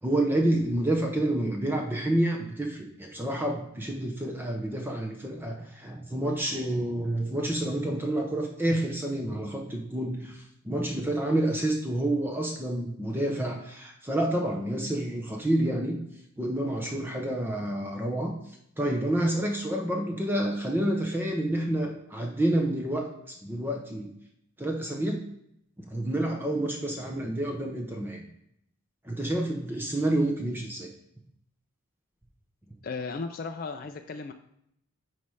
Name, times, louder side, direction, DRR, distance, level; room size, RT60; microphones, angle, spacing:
voice 1, 0.0-16.0 16.4-18.3 18.8-24.1 24.6-25.2 25.8-28.3 29.0-30.9, right 1 dB, 10° right, 1 dB, 0.7 m, -29 dB
voice 2, 32.8-34.3, left 4 dB, 45° left, 5 dB, 0.4 m, -35 dB
9.4 x 3.2 x 4.7 m, 0.74 s
head